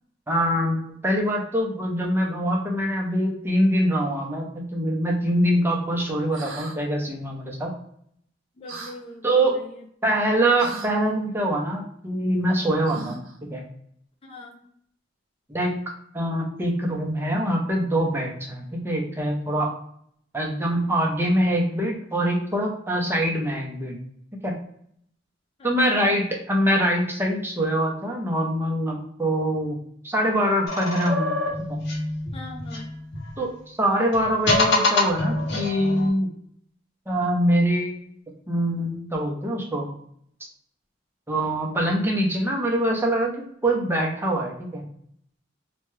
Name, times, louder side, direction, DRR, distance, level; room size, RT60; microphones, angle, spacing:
voice 1, 0.3-7.7 9.2-9.6 10.0-13.2 13.5-13.6 15.5-15.7 16.1-19.7 20.3-24.0 24.4-24.5 25.6-29.8 30.0-31.3 31.7-31.8 33.4-36.3 37.1-38.1 38.5-39.9 41.3-44.8, right 1 dB, 10° right, 0 dB, 0.6 m, -24 dB
sound 1, 6.3-6.8 8.7-8.9 10.6-10.9 12.8-13.4, right 3 dB, 75° right, 0.6 m, -37 dB
voice 2, 8.6-9.8 14.2-14.6 25.6-26.2 32.3-32.9, left 2 dB, 30° left, 0 dB, 0.4 m, -42 dB
sound 2, 30.7-33.4 34.1-36.1, left 2 dB, 60° left, 0.7 m, -25 dB
2.8 x 2.2 x 3.1 m, 0.67 s
head